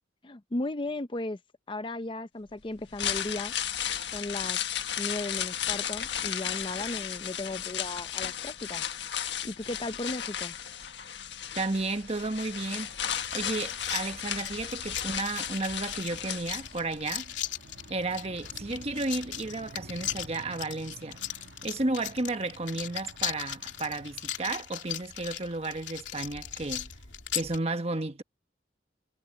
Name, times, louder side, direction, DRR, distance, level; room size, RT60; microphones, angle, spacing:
voice 1, 0.2-1.4 1.7-3.5 4.1-4.6 5.0-8.8 9.4-10.6, left 2 dB, 30° left, 0.6 m, -35 dB
sound 1, 2.8-17.0 17.3-17.4, left 9 dB, 70° left, 1.5 m, -34 dB
voice 2, 11.5-12.9 13.3-17.2 17.9-21.2 21.6-26.9 27.3-28.2, right 2 dB, 35° right, 1.3 m, -33 dB
sound 2, 11.7-24.5, right 2 dB, 70° right, 1.5 m, -52 dB
sound 3, 13.1-27.6, left 11 dB, 90° left, 3.0 m, -38 dB
head